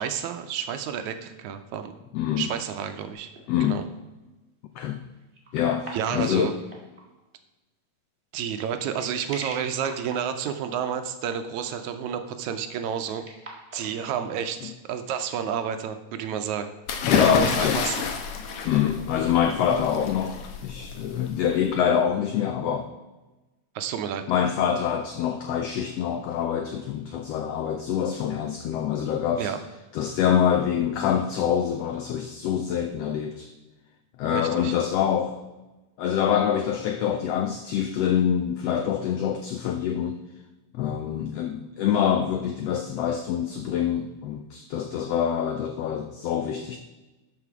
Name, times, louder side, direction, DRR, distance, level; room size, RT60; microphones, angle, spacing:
voice 1, 0.0-1.9 2.4-3.3 3.6-3.8 5.9-6.5 8.3-13.3 13.7-16.7 17.3-18.1 23.8-24.2 29.4-29.6 34.2-34.8, right 8 dB, 75° right, 8 dB, 2.0 m, -30 dB
voice 2, 2.1-2.5 3.5-3.8 4.8-5.0 5.5-6.5 17.0-17.8 18.6-22.9 24.3-29.5 29.9-33.5 34.2-35.4 36.0-40.2 40.7-46.8, left 8 dB, 90° left, 7 dB, 1.3 m, -25 dB
sound 1, 3.2-3.6 5.2-7.2 8.7-10.9 12.8-14.4 16.2-17.5 17.8-17.9 19.0-19.5, right 2 dB, 20° right, 1.7 m, -44 dB
sound 2, 16.9-21.7, left 6 dB, 65° left, 2.1 m, -28 dB
12.0 x 5.8 x 4.7 m, 1.1 s
omnidirectional pair, 3.6 m